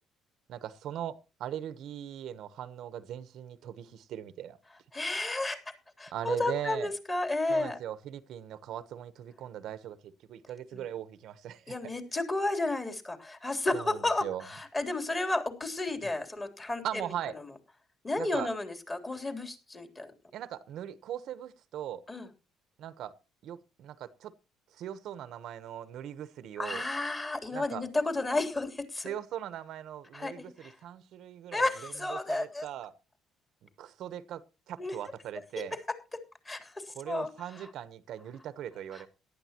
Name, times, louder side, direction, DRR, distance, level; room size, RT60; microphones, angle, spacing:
voice 1, 0.5-4.6 6.1-6.9 7.5-11.7 13.7-14.4 16.8-17.4 18.1-18.5 20.3-22.0 22.8-23.2 23.4-24.3 24.7-26.8 27.5-27.9 29.0-32.9 33.8-35.8 36.9-39.1, right 10 dB, 70° right, 1.0 m, -40 dB
voice 2, 4.9-5.6 6.0-7.8 10.7-10.9 11.7-16.8 18.0-20.1 22.1-22.3 26.6-29.1 30.1-30.7 31.5-32.6 34.8-34.9 36.4-37.3 38.9-39.1, left 2 dB, 20° left, 3.4 m, -32 dB
18.0 x 12.0 x 2.9 m
cardioid pair, 105°, 0 cm